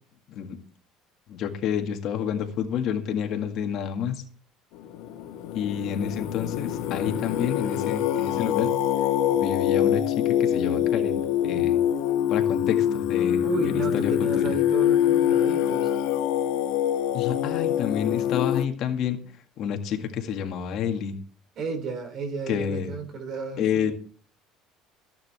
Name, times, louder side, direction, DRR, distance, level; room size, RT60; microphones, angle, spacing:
voice 1, 1.3-4.2 5.5-8.7 9.3-11.8 12.3-14.5 17.1-19.2 19.6-21.2 22.5-22.9 23.6-23.9, left 8 dB, 50° left, 5 dB, 1.9 m, -29 dB
Singing, 4.8-18.6, left 10 dB, 80° left, 1.3 m, -24 dB
voice 2, 13.4-15.9 21.6-23.9, right 4 dB, 40° right, 9 dB, 3.2 m, -33 dB
15.0 x 10.5 x 3.4 m, 0.42 s
cardioid pair, 160°, 0 cm